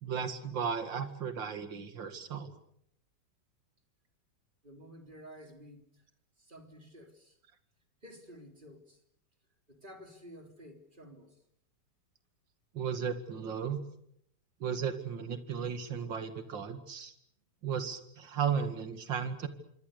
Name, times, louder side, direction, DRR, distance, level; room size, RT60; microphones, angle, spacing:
voice 1, 0.0-2.5 12.7-13.8 14.6-17.1 17.6-19.5, right 7 dB, 65° right, 2.8 m, -35 dB
voice 2, 4.6-6.0 6.4-7.4 8.0-9.0 9.7-11.4, equal, 25° right, 3.8 m, -52 dB
27.0 x 24.5 x 6.8 m
omnidirectional pair, 2.2 m